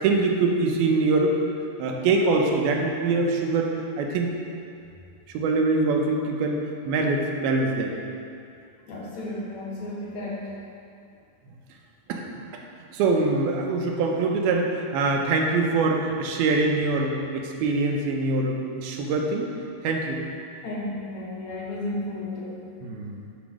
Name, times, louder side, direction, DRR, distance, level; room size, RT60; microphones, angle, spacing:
voice 1, 0.0-1.5 1.8-3.7 4.0-4.3 5.3-7.9 12.1-12.2 12.9-19.5 19.8-20.2 22.8-23.2, right 3 dB, 90° right, 1 dB, 2.7 m, -24 dB
voice 2, 8.9-10.6 20.6-22.7, left 1 dB, 65° left, -4 dB, 2.1 m, -33 dB
8.9 x 5.2 x 6.1 m, 2.4 s
omnidirectional pair, 4.3 m